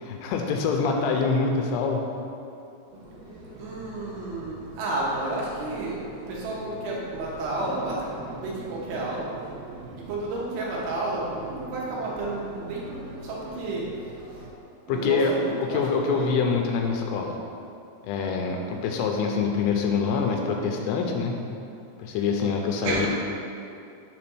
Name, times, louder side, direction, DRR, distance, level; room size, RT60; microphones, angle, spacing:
voice 1, 0.0-2.0 14.9-15.3 15.6-17.4 18.0-21.4 22.0-23.1, left 5 dB, 85° left, 2 dB, 3.1 m, -25 dB
sound 1, 2.9-14.5, right 2 dB, 60° right, 2.5 m, -43 dB
voice 2, 3.6-6.0 6.3-8.1 8.4-9.3 10.1-13.9 14.3-14.5 14.9-16.4 22.8-23.1, right 2 dB, 75° right, -5 dB, 3.2 m, -31 dB
7.6 x 3.3 x 6.0 m, 2.6 s
omnidirectional pair, 5.7 m